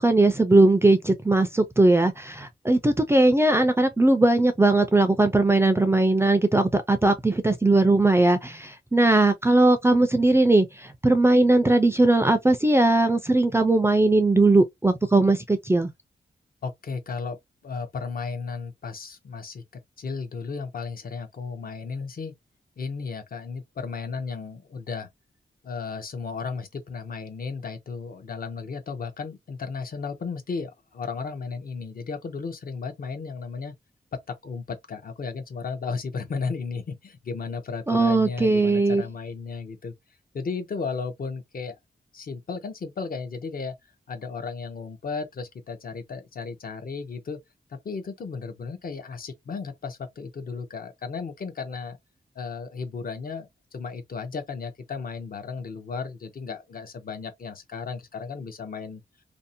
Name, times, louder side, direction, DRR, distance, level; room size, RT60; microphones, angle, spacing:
voice 1, 0.0-10.7 11.0-15.9 37.9-39.0, right 2 dB, 15° right, 0.4 m, -19 dB
voice 2, 16.6-17.4 17.6-19.6 20.0-22.4 22.8-25.1 25.6-33.7 34.3-39.9 40.3-41.7 42.1-43.7 44.1-47.4 47.8-52.0 52.4-59.0, left 5 dB, 55° left, 0.6 m, -34 dB
2.6 x 2.0 x 2.6 m
wide cardioid pair, 140°, 18 cm